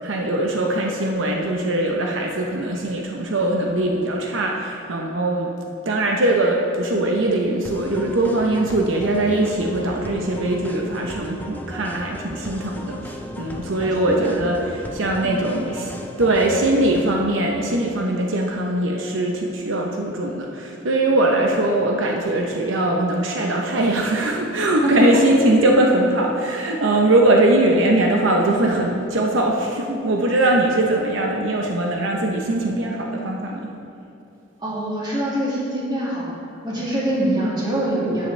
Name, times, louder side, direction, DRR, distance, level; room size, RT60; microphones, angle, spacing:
voice 1, 0.0-5.5 5.8-33.7, right 1 dB, 75° right, 0 dB, 0.8 m, -21 dB
sound 1, 7.6-17.2, left 1 dB, 10° left, 0.4 m, -36 dB
voice 2, 24.8-25.3 34.6-36.3 36.6-38.3, right 1 dB, 20° right, -6 dB, 2.0 m, -24 dB
12.0 x 7.7 x 3.3 m, 2.7 s
head